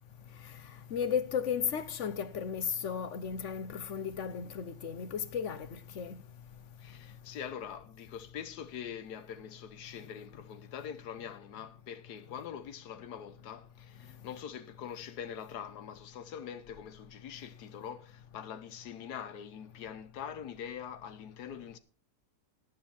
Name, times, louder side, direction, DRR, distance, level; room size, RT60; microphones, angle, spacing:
voice 1, 0.9-5.6 6.0-6.2, left 7 dB, 55° left, 1.1 m, -34 dB
voice 2, 6.8-21.8, left 8 dB, 85° left, 1.5 m, -44 dB
18.0 x 6.3 x 4.4 m
omnidirectional pair, 1.7 m